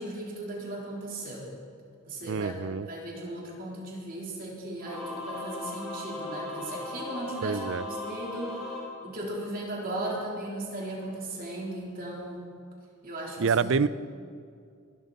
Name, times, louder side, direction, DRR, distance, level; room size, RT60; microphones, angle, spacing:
voice 1, 0.0-1.5 2.1-8.6 9.0-12.4 13.0-13.7, right 1 dB, 45° right, -3 dB, 3.8 m, -37 dB
voice 2, 2.3-2.9 7.4-7.8 13.4-13.9, right 5 dB, 60° right, 16 dB, 0.5 m, -26 dB
Singing / Musical instrument, 4.8-9.7, left 2 dB, ahead, 3.4 m, -38 dB
22.0 x 13.0 x 4.2 m, 2.3 s
head